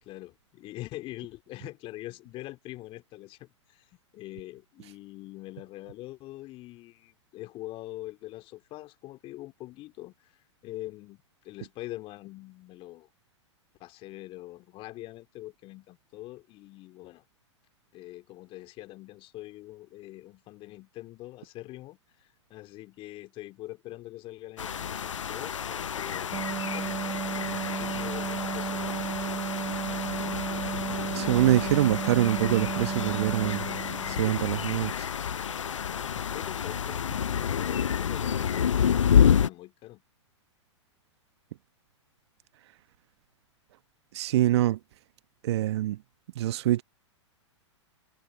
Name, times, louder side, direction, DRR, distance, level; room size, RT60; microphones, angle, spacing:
voice 1, 0.0-13.1 13.8-17.2 17.9-26.3 26.7-27.0 27.3-29.4 35.9-40.0, left 17 dB, 35° left, 2.6 m, -44 dB
sound 1, 24.6-39.5, left 8 dB, 80° left, 0.7 m, -29 dB
sound 2, 26.3-34.4, right 12 dB, 25° right, 1.9 m, -34 dB
voice 2, 31.1-33.6 34.1-35.1 44.1-44.8 45.4-46.0 46.4-46.8, right 14 dB, 60° right, 1.1 m, -25 dB
figure-of-eight pair, 105°, 16 cm